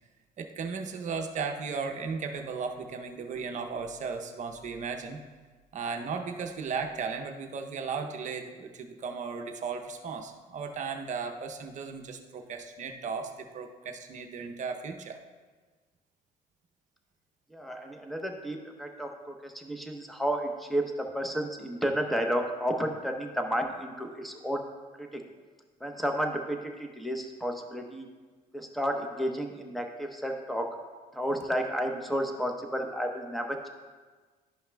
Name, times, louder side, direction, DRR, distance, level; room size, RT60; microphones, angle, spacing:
voice 1, 0.4-5.2 5.7-15.2, right 5 dB, 45° right, 4 dB, 0.7 m, -36 dB
voice 2, 17.5-24.6 25.0-25.2 25.8-28.1 28.5-30.7 31.1-33.7, equal, ahead, 3 dB, 0.8 m, -32 dB
11.5 x 5.5 x 2.2 m, 1.4 s
cardioid pair, 110°, 17 cm